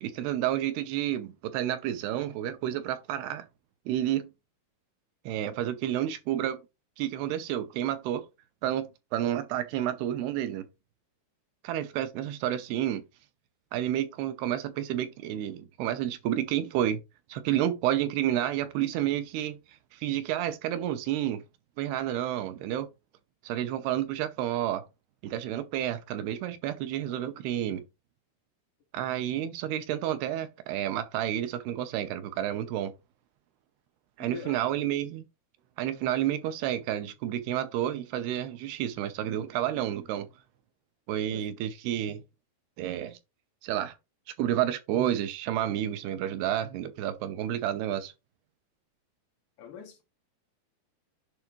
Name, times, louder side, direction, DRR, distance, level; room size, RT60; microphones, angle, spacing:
voice 1, 0.0-3.5 3.9-4.3 5.3-6.6 7.0-8.2 8.6-10.7 11.6-13.0 13.7-17.0 17.3-19.6 19.9-21.4 21.8-22.9 23.4-24.8 25.2-27.8 28.9-32.9 34.2-35.3 35.8-40.3 41.1-42.2 42.8-43.2 43.6-43.9 44.4-48.1, right 11 dB, 90° right, 2.8 m, -30 dB
voice 2, 34.2-34.6 41.2-41.5 49.6-50.0, left 8 dB, 65° left, 2.4 m, -44 dB
10.5 x 3.5 x 3.0 m
omnidirectional pair, 4.5 m